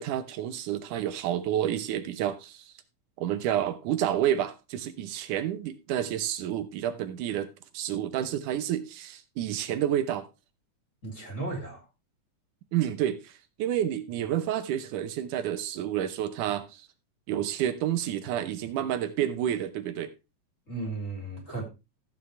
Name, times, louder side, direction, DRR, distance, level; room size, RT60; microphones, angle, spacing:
voice 1, 0.0-2.7 3.2-10.3 12.7-16.9 17.3-20.1, right 11 dB, 80° right, 2.4 m, -29 dB
voice 2, 11.0-11.8 20.7-21.6, right 2 dB, 25° left, 3.4 m, -35 dB
14.5 x 7.6 x 3.3 m
omnidirectional pair, 3.6 m